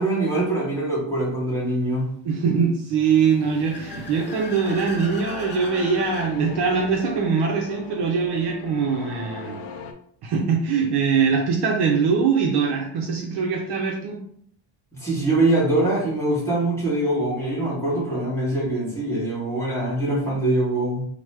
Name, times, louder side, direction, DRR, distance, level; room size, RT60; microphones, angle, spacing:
voice 1, 0.0-2.1 15.0-21.1, right 2 dB, 5° left, -7 dB, 1.1 m, -23 dB
voice 2, 2.2-9.6 10.2-14.2, right 5 dB, 55° right, 0 dB, 0.5 m, -22 dB
sound 1, 3.0-9.9, left 5 dB, 80° left, 0.6 m, -39 dB
Car / Accelerating revving vroom, 3.1-6.3, left 2 dB, 25° left, 0.3 m, -40 dB
3.1 x 2.1 x 3.1 m, 0.65 s
cardioid pair, 155°, 50 cm